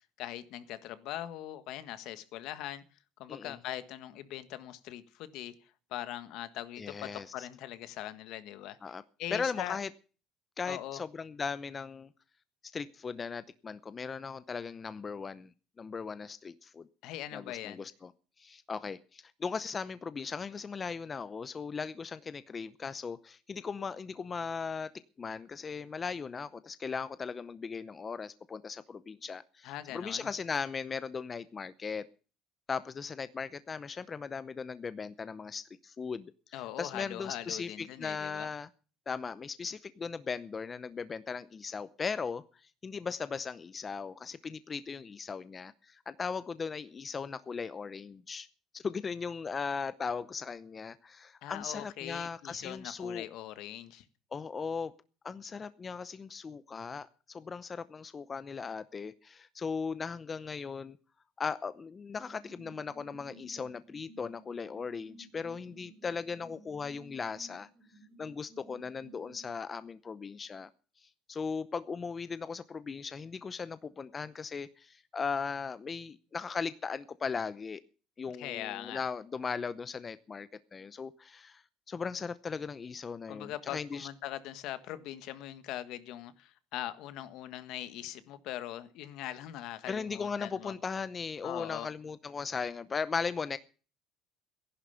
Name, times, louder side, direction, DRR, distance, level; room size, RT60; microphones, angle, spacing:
voice 1, 0.2-2.8 3.2-5.5 5.9-8.8 9.2-9.8 10.7-11.0 17.0-17.8 29.6-30.3 36.5-38.5 51.4-54.0 78.4-79.0 83.3-90.7 91.4-91.9, left 13 dB, 70° left, 1.5 m, -41 dB
voice 2, 6.8-7.5 8.8-9.0 9.3-9.9 10.6-12.1 12.7-16.9 17.3-18.1 18.4-24.9 25.2-32.1 32.7-38.7 39.1-48.5 48.7-53.3 54.3-54.9 55.2-61.0 61.4-67.7 68.2-70.7 71.0-77.8 78.2-84.1 89.9-93.6, left 5 dB, 25° left, 0.7 m, -38 dB
sound 1, 62.1-69.5, right 1 dB, 30° right, 5.7 m, -56 dB
15.0 x 11.0 x 6.9 m
cardioid pair, 130°, 0 cm